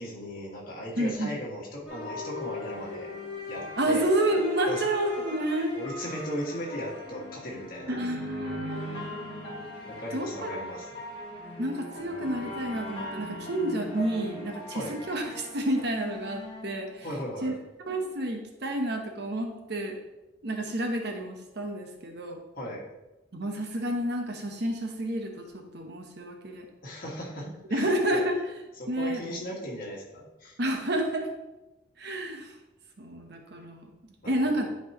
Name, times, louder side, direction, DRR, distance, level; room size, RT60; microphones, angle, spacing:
voice 1, 0.0-3.1 3.5-4.1 4.7-4.9 5.7-8.0 9.8-10.9 14.7-14.9 17.0-17.6 22.6-22.8 26.8-28.2 28.8-30.6 34.2-34.6, equal, 50° left, -4 dB, 2.0 m, -37 dB
voice 2, 1.0-1.3 3.8-5.7 7.9-9.1 10.1-10.5 11.6-17.1 17.4-17.5 17.9-20.0 20.4-22.4 23.3-26.7 27.7-28.4 28.9-29.2 30.6-31.3 32.0-32.5 33.0-33.9 34.3-34.7, right 1 dB, 55° right, 3 dB, 1.1 m, -30 dB
sound 1, 1.9-17.4, left 1 dB, 30° left, 1.8 m, -40 dB
11.0 x 4.6 x 3.0 m, 1.0 s
head